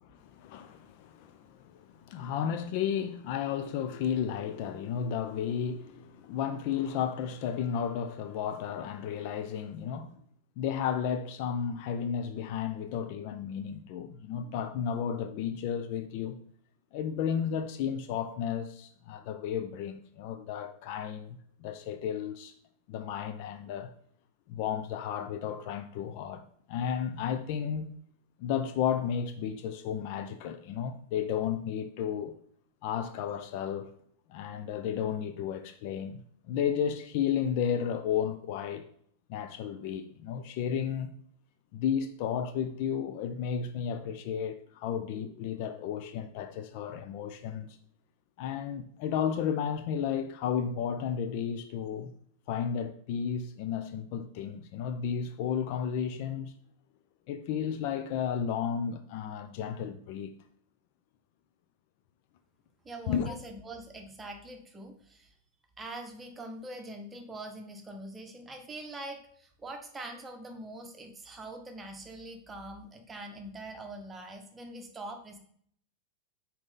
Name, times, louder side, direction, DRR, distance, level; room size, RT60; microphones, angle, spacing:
voice 1, 0.0-10.2 10.6-16.4 16.9-22.5 22.9-23.9 24.5-27.9 28.4-32.4 32.8-33.9 34.3-36.2 36.5-38.9 39.3-41.1 41.7-47.8 48.4-52.1 52.5-56.5 57.3-60.3 63.1-63.3, left 8 dB, 45° left, 0.4 m, -33 dB
voice 2, 62.8-65.3 65.8-75.4, right 1 dB, 15° right, 1.0 m, -43 dB
6.1 x 4.2 x 3.7 m
figure-of-eight pair, 90°, 0 cm